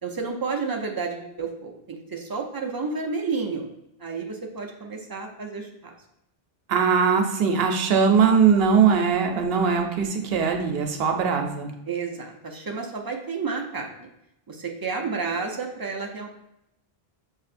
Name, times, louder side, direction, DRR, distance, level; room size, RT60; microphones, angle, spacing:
voice 1, 0.0-3.7 4.0-5.9 11.9-14.1 14.5-16.3, right 4 dB, 35° right, 1 dB, 0.4 m, -31 dB
voice 2, 6.7-11.7, right 6 dB, 75° right, 4 dB, 0.8 m, -20 dB
6.5 x 2.7 x 2.5 m, 0.83 s
omnidirectional pair, 1.0 m